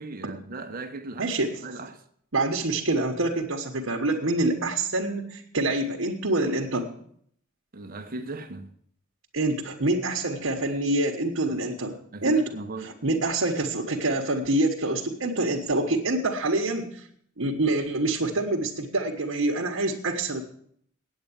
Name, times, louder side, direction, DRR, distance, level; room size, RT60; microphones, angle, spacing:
voice 1, 0.0-1.3 1.6-2.0 7.7-8.7 12.1-12.9, right 2 dB, 45° right, 1.0 m, -37 dB
voice 2, 1.2-1.6 2.3-6.9 9.3-12.4 12.8-17.0 17.4-20.4, right 2 dB, 70° right, 1.3 m, -26 dB
8.9 x 8.6 x 8.6 m
head